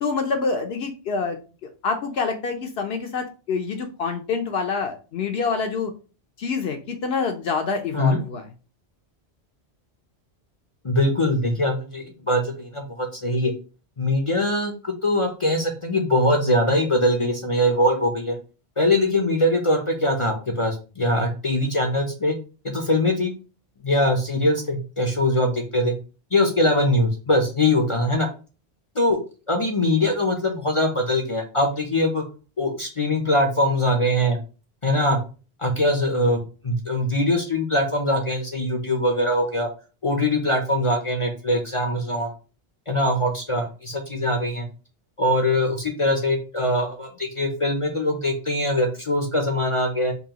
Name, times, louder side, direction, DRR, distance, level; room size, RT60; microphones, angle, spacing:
voice 1, 0.0-5.9 6.4-8.5, left 4 dB, 70° left, 4 dB, 0.8 m, -26 dB
voice 2, 10.8-13.5 14.0-18.4 18.8-22.3 22.6-23.3 23.8-25.9 26.3-28.3 29.0-29.2 29.5-32.2 32.6-34.4 34.8-35.2 35.6-39.7 40.0-42.3 42.9-44.7 45.2-50.1, left 1 dB, 40° left, 4 dB, 0.5 m, -22 dB
5.4 x 2.3 x 2.8 m, 0.34 s
omnidirectional pair, 1.1 m